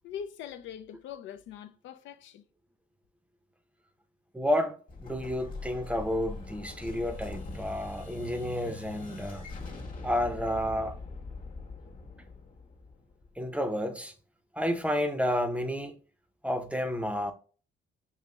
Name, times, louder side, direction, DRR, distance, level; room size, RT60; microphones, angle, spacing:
voice 1, 0.0-2.4, left 8 dB, 70° left, 0.4 m, -42 dB
voice 2, 4.3-9.4 10.0-10.9 13.4-14.1 14.5-15.9 16.4-17.3, equal, 5° right, 0.6 m, -30 dB
Explosion, 4.9-13.5, left 3 dB, 45° left, 1.1 m, -42 dB
5.6 x 3.0 x 2.2 m
cardioid pair, 90°, 20 cm